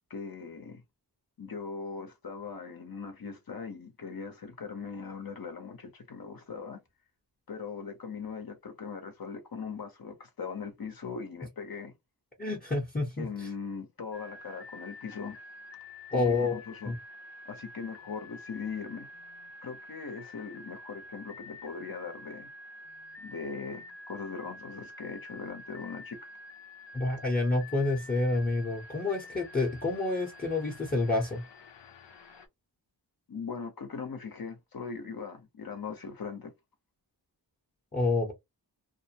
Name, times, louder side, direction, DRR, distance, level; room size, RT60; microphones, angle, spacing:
voice 1, 0.1-0.8 1.4-6.8 7.5-11.9 13.2-15.4 16.1-16.9 17.5-19.1 19.6-22.5 23.2-26.3 33.3-36.5, left 5 dB, 55° left, 0.7 m, -40 dB
voice 2, 12.4-13.5 16.1-16.9 26.9-31.4 37.9-38.3, left 2 dB, 20° left, 0.7 m, -29 dB
sound 1, 14.1-32.5, left 2 dB, 85° left, 0.6 m, -48 dB
2.5 x 2.0 x 2.7 m
wide cardioid pair, 75°, 43 cm